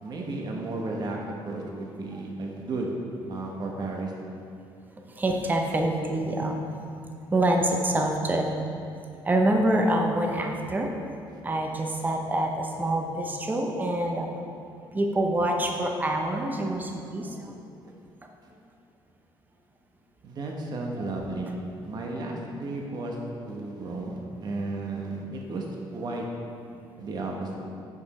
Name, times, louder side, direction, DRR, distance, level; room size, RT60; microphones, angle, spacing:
voice 1, 0.0-1.2 1.4-2.9 3.3-4.1 20.2-21.5 21.8-23.2 23.5-25.6 25.9-26.3 27.0-27.6, right 2 dB, 45° right, 0 dB, 1.1 m, -33 dB
voice 2, 5.1-6.6 7.3-8.5 9.2-10.9 11.4-14.3 14.9-17.5 21.0-21.1, right 1 dB, 20° right, 2 dB, 0.8 m, -26 dB
9.4 x 5.1 x 4.2 m, 2.4 s
cardioid pair, 110°, 10 cm